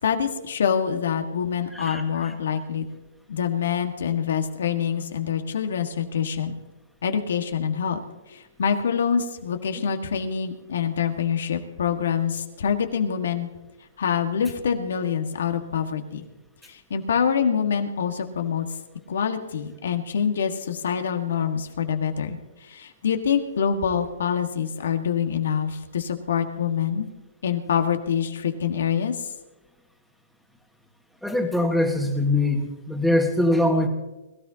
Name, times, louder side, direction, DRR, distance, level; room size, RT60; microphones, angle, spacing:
voice 1, 0.0-2.8 3.3-6.6 7.0-8.0 8.3-13.5 14.0-16.2 16.7-18.7 19.1-22.4 22.7-27.1 27.4-29.1, left 7 dB, 70° left, 5 dB, 1.7 m, -25 dB
voice 2, 31.2-33.9, left 1 dB, ahead, 2 dB, 1.7 m, -22 dB
22.0 x 13.0 x 2.9 m, 1.1 s
hypercardioid pair, 145°, 0 cm